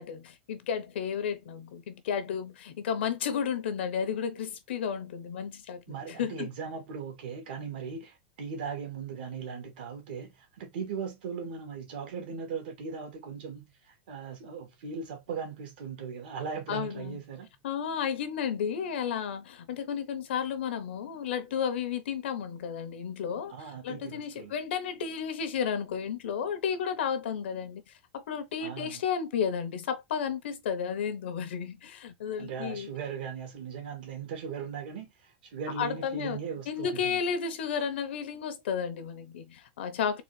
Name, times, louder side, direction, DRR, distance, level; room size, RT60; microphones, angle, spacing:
voice 1, 0.0-6.5 16.7-17.2 17.6-23.5 23.8-27.8 28.1-32.9 35.8-36.4 36.7-40.2, left 7 dB, 85° left, 0.9 m, -32 dB
voice 2, 5.9-17.5 23.5-24.5 28.6-29.0 32.4-37.2, right 6 dB, 60° right, 1.7 m, -38 dB
4.0 x 2.5 x 3.2 m
supercardioid pair, 175°, 6 cm